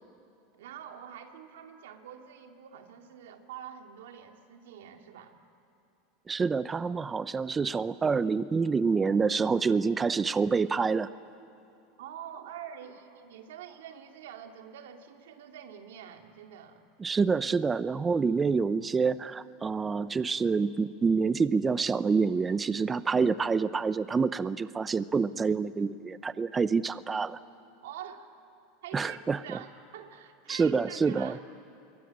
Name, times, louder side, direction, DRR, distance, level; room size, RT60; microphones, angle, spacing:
voice 1, 0.6-5.4 12.0-16.9 27.8-28.3 28.8-29.2 29.4-31.4, right 9 dB, 85° right, 4 dB, 2.4 m, -46 dB
voice 2, 6.3-11.1 17.0-27.4 28.9-29.6 30.5-31.4, right 5 dB, 20° right, 15 dB, 0.6 m, -27 dB
27.0 x 23.0 x 8.8 m, 2.9 s
supercardioid pair, 125°, 0 cm